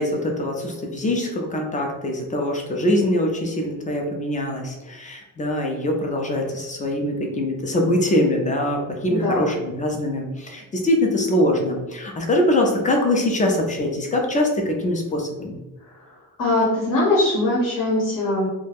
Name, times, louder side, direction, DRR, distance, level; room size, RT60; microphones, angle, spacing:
voice 1, 0.0-15.6, left 1 dB, 20° left, 1 dB, 0.4 m, -23 dB
voice 2, 9.1-9.5 16.0-16.1 16.4-18.5, left 2 dB, 60° left, -5 dB, 0.8 m, -21 dB
2.4 x 2.1 x 3.3 m, 1.1 s
wide cardioid pair, 150°, 36 cm